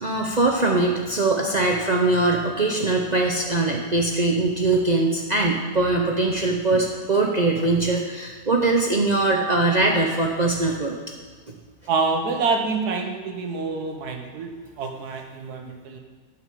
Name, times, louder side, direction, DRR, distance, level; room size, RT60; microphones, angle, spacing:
voice 1, 0.0-10.9, right 2 dB, 40° right, 0 dB, 0.6 m, -22 dB
voice 2, 11.9-14.5 14.8-16.0, right 4 dB, 90° right, 3 dB, 1.6 m, -26 dB
7.8 x 5.9 x 7.5 m, 1.5 s
omnidirectional pair, 1.6 m